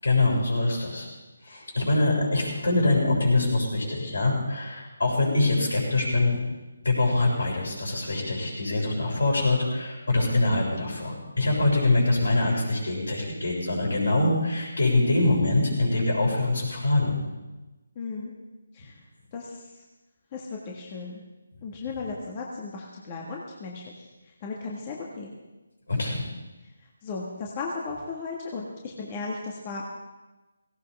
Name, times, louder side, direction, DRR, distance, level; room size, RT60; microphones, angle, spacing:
voice 1, 0.0-1.1 1.4-6.4 6.8-17.2 25.9-26.3, left 2 dB, 75° left, -2 dB, 6.8 m, -24 dB
voice 2, 17.9-18.3 18.7-19.0 19.3-19.7 20.3-21.2 21.6-25.3 27.0-29.9, left 4 dB, 25° left, -2 dB, 1.7 m, -36 dB
18.0 x 17.0 x 3.5 m, 1.1 s
figure-of-eight pair, 165°, 0 cm